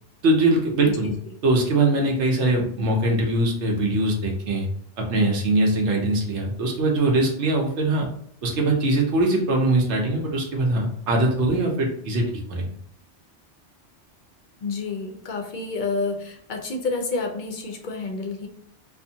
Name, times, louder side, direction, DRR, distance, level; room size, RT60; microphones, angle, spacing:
voice 1, 0.2-1.1 1.4-4.7 5.0-8.1 8.4-12.7, right 2 dB, 75° right, 1 dB, 1.0 m, -22 dB
voice 2, 0.8-1.2 14.6-18.5, left 3 dB, 55° left, 2 dB, 0.5 m, -29 dB
2.5 x 2.5 x 2.7 m, 0.63 s
omnidirectional pair, 1.2 m